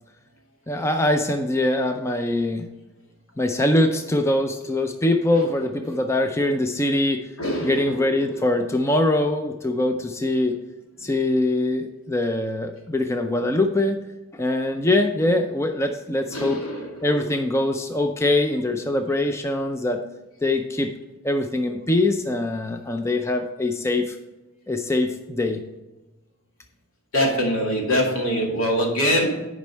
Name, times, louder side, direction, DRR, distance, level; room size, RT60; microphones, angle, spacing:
voice 1, 0.7-2.7 3.4-7.2 7.6-10.6 11.0-14.0 14.3-16.6 17.0-20.0 20.4-20.9 21.2-24.2 24.7-25.6, left 1 dB, 15° left, 5 dB, 0.4 m, -23 dB
voice 2, 7.4-8.4 11.0-11.1 16.3-17.3 27.1-29.4, equal, 85° left, -1 dB, 2.4 m, -24 dB
10.5 x 5.2 x 4.5 m, 1.1 s
head